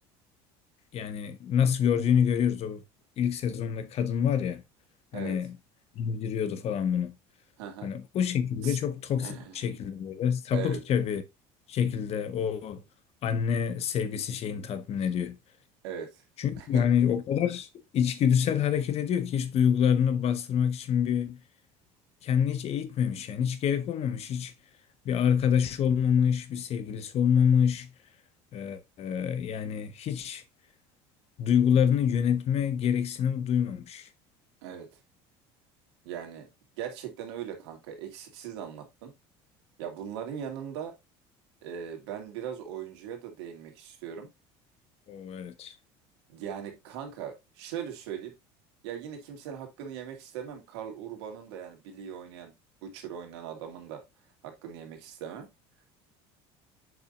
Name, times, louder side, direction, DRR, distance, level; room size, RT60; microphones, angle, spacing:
voice 1, 0.9-2.8 3.2-4.6 5.1-5.6 5.9-7.1 7.8-11.2 11.7-12.8 13.2-15.4 16.4-21.4 22.2-24.5 25.0-27.9 28.5-30.4 31.4-34.1 45.1-45.7, left 8 dB, 50° left, 1.4 m, -27 dB
voice 2, 7.6-7.9 8.6-8.8 9.2-9.6 10.5-10.8 15.8-16.2 16.6-16.9 34.6-34.9 36.0-36.5 36.8-39.1 39.8-40.9 41.6-44.3 46.3-48.3 48.8-52.5 52.8-54.0 54.4-55.5, right 8 dB, 90° right, 2.3 m, -39 dB
7.8 x 5.6 x 2.6 m
supercardioid pair, 105°, 14 cm